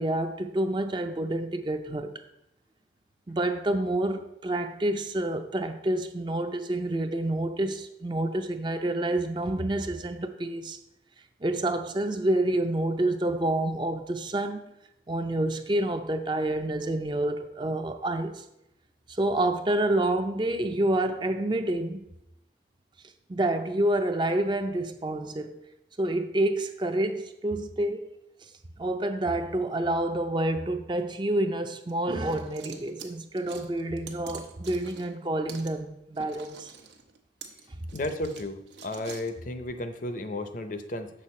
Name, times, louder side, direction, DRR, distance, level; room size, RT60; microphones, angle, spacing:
voice 1, 0.0-2.1 3.3-10.8 11.4-14.7 15.1-18.4 19.1-22.1 23.3-25.6 26.0-28.0 28.8-36.7, right 1 dB, 25° right, 8 dB, 0.5 m, -28 dB
sound 1, 31.9-35.2 35.5-35.7 36.1-39.3, right 6 dB, 85° right, 1.0 m, -46 dB
voice 2, 37.9-41.1, left 1 dB, 50° left, 9 dB, 0.6 m, -33 dB
7.5 x 6.4 x 4.3 m, 0.84 s
head